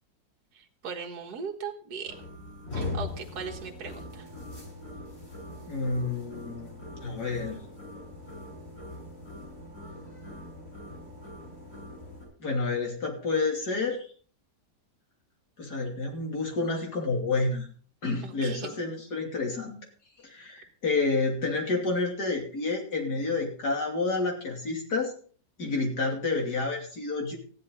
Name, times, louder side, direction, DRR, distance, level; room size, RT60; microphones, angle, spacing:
voice 1, 0.5-2.1 2.8-4.3 18.2-18.8, right 5 dB, 65° right, 1 dB, 1.9 m, -38 dB
sound 1, 2.1-12.3, left 2 dB, 45° left, 7.0 m, -41 dB
voice 2, 5.7-6.7 7.0-7.6 12.4-14.1 15.6-17.7 18.0-19.8 20.2-25.1 25.6-27.4, left 3 dB, 65° left, 1 dB, 3.5 m, -29 dB
14.5 x 11.0 x 4.0 m, 0.43 s
omnidirectional pair, 1.9 m